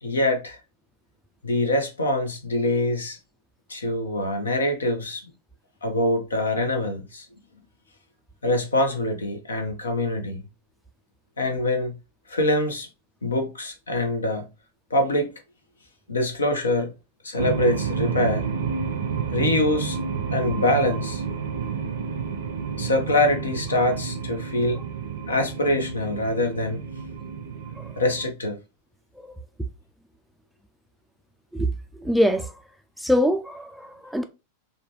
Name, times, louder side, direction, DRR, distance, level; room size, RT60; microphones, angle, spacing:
voice 1, 0.0-0.6 1.4-3.2 3.7-5.3 5.8-7.3 8.4-10.4 11.4-12.0 12.3-12.9 13.2-14.5 14.9-15.3 16.1-16.9 17.2-18.4 19.3-20.0 20.3-21.2 22.8-24.8 25.3-26.8 28.0-28.6, left 1 dB, 70° left, 0.8 m, -24 dB
sound 1, 17.4-28.3, right 6 dB, 60° right, 0.5 m, -30 dB
voice 2, 32.0-32.6 33.0-34.2, equal, ahead, 0.4 m, -24 dB
3.8 x 2.2 x 3.0 m
figure-of-eight pair, 90°, 0 cm